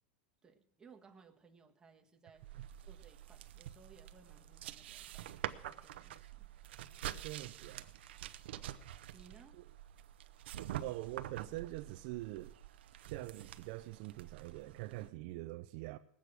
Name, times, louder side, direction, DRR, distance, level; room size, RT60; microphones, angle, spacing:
voice 1, 0.4-5.3 5.6-6.5 8.5-8.7 9.1-9.6, right 5 dB, 10° right, 1.3 m, -62 dB
sound 1, 2.4-15.1, right 12 dB, 80° right, 0.8 m, -47 dB
voice 2, 7.2-7.9 9.5-9.6 10.8-12.6 13.0-16.0, right 18 dB, 50° right, 0.5 m, -44 dB
19.0 x 8.3 x 6.2 m
supercardioid pair, 150°, 6 cm